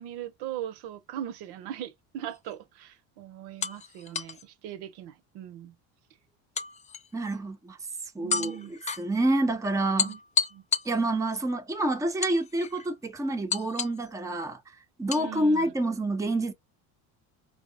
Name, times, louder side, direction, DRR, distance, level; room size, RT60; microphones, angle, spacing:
voice 1, 0.0-5.7 8.2-8.7 10.0-10.2 10.5-10.6 15.1-15.7, right 11 dB, 75° right, 0.7 m, -40 dB
sound 1, 2.3-2.5 3.6-4.4 6.6-7.4 8.3-9.0 10.0-11.4 12.2-12.9 13.5-14.1 15.1-15.3, left 6 dB, 20° left, 0.3 m, -31 dB
voice 2, 7.1-7.8 8.1-10.2 10.8-14.6 15.0-16.5, right 1 dB, 10° right, 0.7 m, -28 dB
4.7 x 2.1 x 2.5 m
supercardioid pair, 100°, 41 cm